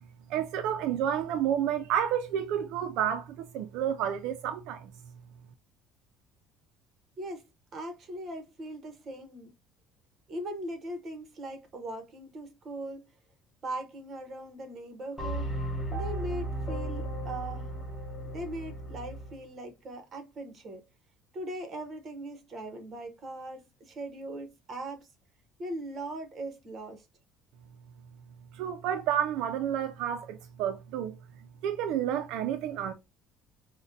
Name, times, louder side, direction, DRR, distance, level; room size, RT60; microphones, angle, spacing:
voice 1, 0.3-4.9 28.5-31.2 31.6-32.9, right 9 dB, 70° right, 0.4 m, -30 dB
voice 2, 7.7-9.5 10.3-13.0 13.6-15.5 15.9-17.7 18.2-20.8 21.3-25.1 25.6-27.0, right 1 dB, 30° right, 0.9 m, -40 dB
sound 1, 15.2-19.4, right 1 dB, 15° left, 1.1 m, -35 dB
5.0 x 2.1 x 2.6 m
cardioid pair, 150°, 0 cm